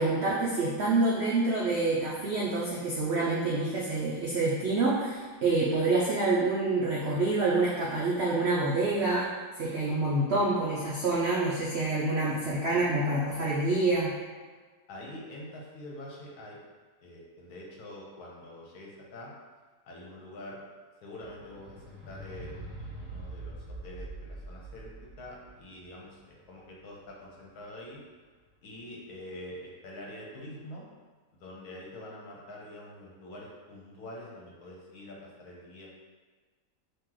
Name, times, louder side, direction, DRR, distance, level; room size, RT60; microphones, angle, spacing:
voice 1, 0.0-9.3 9.6-14.1, right 2 dB, 75° right, -6 dB, 0.6 m, -27 dB
voice 2, 14.9-16.6 17.0-19.3 19.9-20.6 21.0-24.9 25.2-28.0 28.6-30.8 31.4-35.9, left 1 dB, 70° left, -3 dB, 1.2 m, -45 dB
sound 1, 21.2-27.6 28.5-28.6, right 2 dB, 25° right, 1.2 m, -44 dB
3.0 x 2.8 x 3.7 m, 1.4 s
omnidirectional pair, 1.8 m